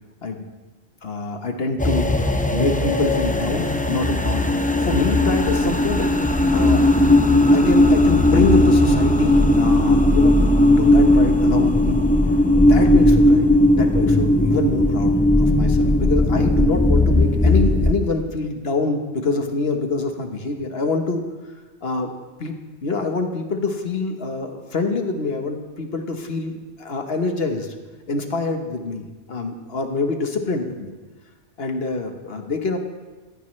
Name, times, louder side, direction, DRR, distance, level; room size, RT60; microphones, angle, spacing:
voice 1, 1.0-2.1 2.5-4.5 4.8-6.1 6.5-6.9 7.5-10.3 10.8-12.0 12.6-13.5 13.7-21.5 21.8-22.1 22.4-22.6 22.8-27.7 28.1-30.9 31.6-32.8, left 3 dB, 60° left, 5 dB, 1.4 m, -25 dB
sound 1, 1.8-17.9, left 1 dB, 10° left, 0.4 m, -17 dB
16.5 x 14.0 x 3.2 m, 1.3 s
omnidirectional pair, 1.2 m